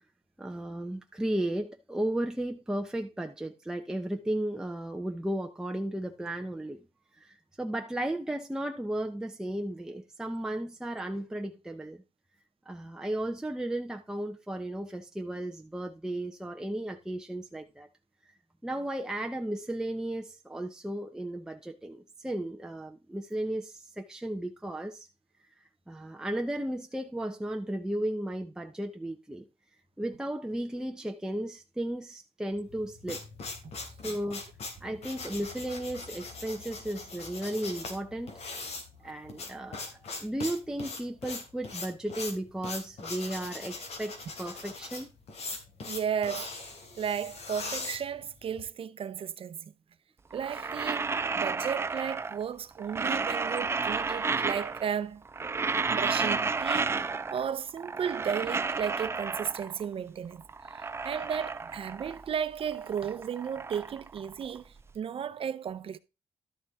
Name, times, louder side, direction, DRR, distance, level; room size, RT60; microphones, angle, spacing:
voice 1, 0.4-6.9 7.2-12.0 12.7-17.9 18.6-25.1 25.9-29.5 30.0-33.2 34.0-34.4 34.8-38.4 39.0-39.9 40.2-45.1, right 1 dB, 5° right, 0.8 m, -34 dB
sound 1, 32.7-48.6, left 3 dB, 75° left, 3.3 m, -40 dB
voice 2, 45.9-46.5 47.0-49.7 50.3-55.2 55.9-60.4 60.7-66.0, right 8 dB, 60° right, 0.8 m, -34 dB
sound 2, 50.3-52.5 52.8-55.0 55.2-57.5 57.8-59.8 60.3-62.3 62.6-64.8, right 4 dB, 25° right, 0.4 m, -32 dB
12.5 x 7.0 x 3.6 m
cardioid pair, 120°, 11 cm